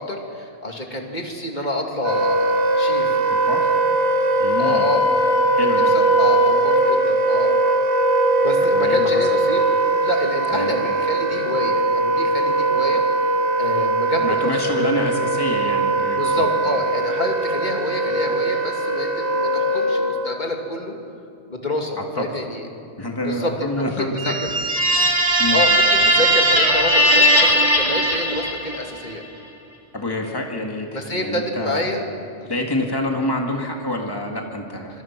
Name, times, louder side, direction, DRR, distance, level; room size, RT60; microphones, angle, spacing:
voice 1, 0.0-3.2 4.6-5.1 5.6-7.5 8.4-9.6 10.0-13.0 13.6-14.9 16.1-20.9 21.5-22.6 23.2-24.3 25.5-29.2 30.9-32.0 32.4-32.6, left 1 dB, 40° left, 2 dB, 2.7 m, -27 dB
Wind instrument woodwind instrument, 2.0-20.2, right 2 dB, 50° right, 3.3 m, -20 dB
voice 2, 3.3-3.7 4.4-4.9 5.5-5.9 8.6-9.2 10.5-10.8 14.2-16.5 22.0-22.3 23.0-24.3 25.4-25.6 29.9-31.9 32.5-35.0, left 1 dB, 20° left, 1 dB, 2.2 m, -27 dB
sound 1, 24.2-28.9, right 1 dB, 30° right, 2.3 m, -18 dB
25.5 x 22.5 x 6.1 m, 2.4 s
omnidirectional pair, 1.2 m